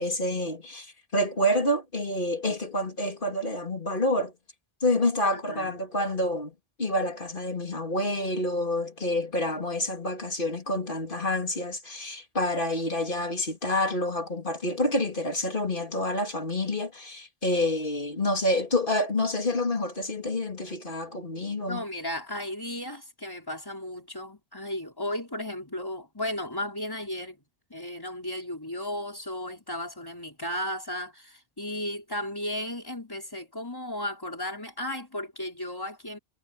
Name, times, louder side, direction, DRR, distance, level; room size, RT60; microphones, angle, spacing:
voice 1, 0.0-4.3 4.8-21.8, left 1 dB, 45° left, 3.1 m, -28 dB
voice 2, 5.3-5.7 21.7-27.4 27.7-36.2, left 1 dB, 20° left, 4.6 m, -35 dB
omnidirectional pair, 1.2 m